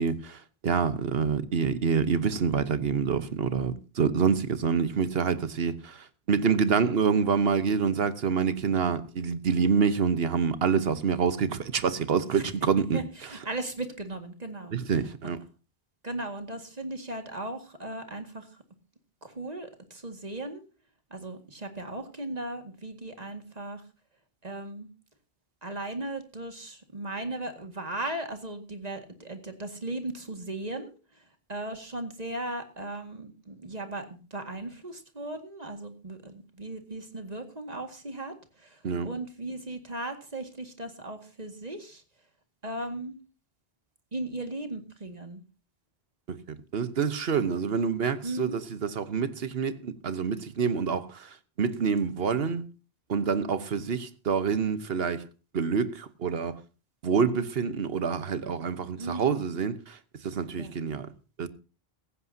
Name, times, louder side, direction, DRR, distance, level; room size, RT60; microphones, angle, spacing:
voice 1, 0.0-13.0 14.7-15.4 38.8-39.1 46.3-51.3 51.6-52.6 53.1-55.3 55.5-56.6 57.0-60.0 60.2-61.1 61.4-61.5, right 6 dB, 75° right, 1.3 m, -27 dB
voice 2, 12.9-14.8 16.0-18.5 19.2-20.6 21.1-23.8 24.4-24.9 25.6-31.2 31.5-42.0 42.6-43.2 44.1-45.4 48.2-48.6 59.0-59.3 60.6-60.8, right 2 dB, 40° right, 2.1 m, -37 dB
16.0 x 15.5 x 2.8 m
omnidirectional pair, 1.0 m